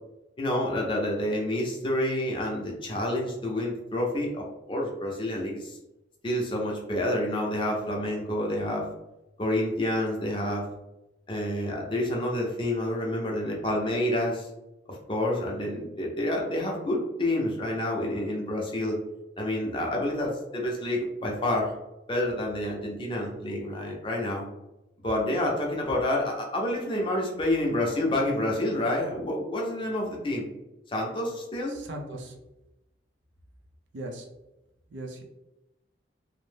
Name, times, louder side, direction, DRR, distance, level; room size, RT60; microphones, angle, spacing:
voice 1, 0.4-5.8 6.2-8.9 9.4-10.6 11.3-14.5 14.9-19.0 19.4-21.7 22.1-24.5 25.0-30.5 30.9-31.7, left 1 dB, 25° left, -1 dB, 0.5 m, -28 dB
voice 2, 31.7-32.4 33.9-34.3 34.9-35.2, right 1 dB, 85° right, 3 dB, 0.5 m, -38 dB
2.6 x 2.0 x 3.2 m, 0.95 s
head